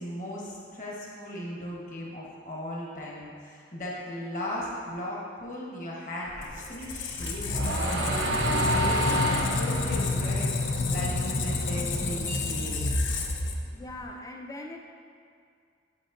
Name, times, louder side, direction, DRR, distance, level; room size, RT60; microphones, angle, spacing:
voice 1, 0.0-10.5 10.9-12.9, left 1 dB, 40° left, -4 dB, 1.1 m, -37 dB
Squeak, 6.3-14.0, left 2 dB, 85° left, 0.5 m, -29 dB
sound 1, 6.8-11.3 11.7-13.3, right 1 dB, 85° right, 0.7 m, -30 dB
voice 2, 13.7-14.8, left 1 dB, 15° left, 2 dB, 0.4 m, -40 dB
8.0 x 5.0 x 2.5 m, 2.2 s
head